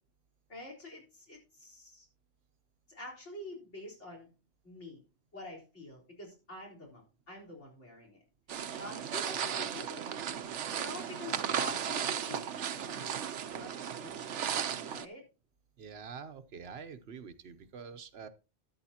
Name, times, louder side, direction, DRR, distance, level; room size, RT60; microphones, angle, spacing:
voice 1, 0.5-2.1 2.9-4.3 4.6-5.0 5.3-8.2 8.7-10.1 10.7-13.2 13.5-15.2, left 2 dB, 80° left, 0 dB, 4.4 m, -47 dB
sound 1, 8.5-15.0, right 8 dB, 85° right, 1.1 m, -35 dB
voice 2, 15.8-18.3, right 6 dB, 65° right, 10 dB, 1.1 m, -46 dB
13.0 x 11.5 x 2.9 m, 0.32 s
omnidirectional pair, 1.2 m